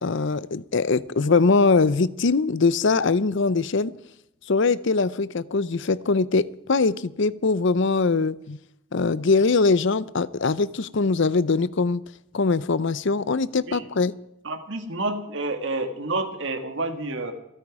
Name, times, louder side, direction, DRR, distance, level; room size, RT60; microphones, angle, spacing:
voice 1, 0.0-3.9 4.5-8.6 8.9-12.0 12.3-14.1, left 4 dB, 55° left, 18 dB, 0.6 m, -22 dB
voice 2, 14.4-17.3, right 2 dB, 55° right, 6 dB, 1.9 m, -29 dB
26.5 x 9.1 x 4.8 m, 0.81 s
head